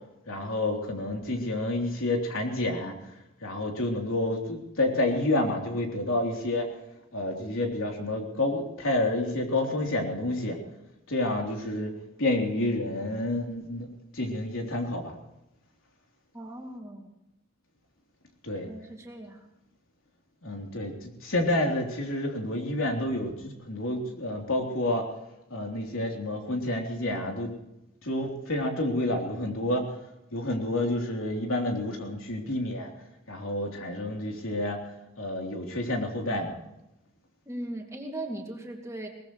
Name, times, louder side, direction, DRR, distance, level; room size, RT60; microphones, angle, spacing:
voice 1, 0.3-2.9 3.4-6.7 7.1-10.6 11.1-13.9 14.1-15.1 18.4-18.7 20.4-25.1 25.5-27.5 28.0-29.9 30.3-32.9 33.3-34.8 35.2-36.5, left 1 dB, 80° left, 1 dB, 3.5 m, -29 dB
voice 2, 16.3-17.1 18.7-19.5 37.5-39.1, right 1 dB, 15° right, 0 dB, 2.5 m, -38 dB
22.0 x 19.5 x 3.2 m, 0.87 s
head